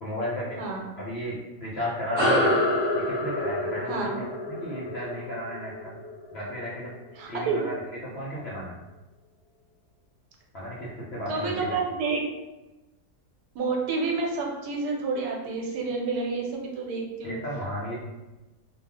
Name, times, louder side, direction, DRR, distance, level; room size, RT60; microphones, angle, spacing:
voice 1, 0.0-0.6 1.0-2.6 2.9-5.9 6.3-6.9 7.3-7.7 8.0-8.8 10.5-11.7 17.2-17.9, equal, 65° left, -6 dB, 0.6 m, -34 dB
sound 1, 2.2-7.0, left 1 dB, 15° left, 0.9 m, -27 dB
voice 2, 3.9-4.2 7.2-7.6 11.3-12.3 13.5-17.4, right 4 dB, 90° right, 0 dB, 1.2 m, -29 dB
2.4 x 2.3 x 3.4 m, 1.1 s
omnidirectional pair, 1.7 m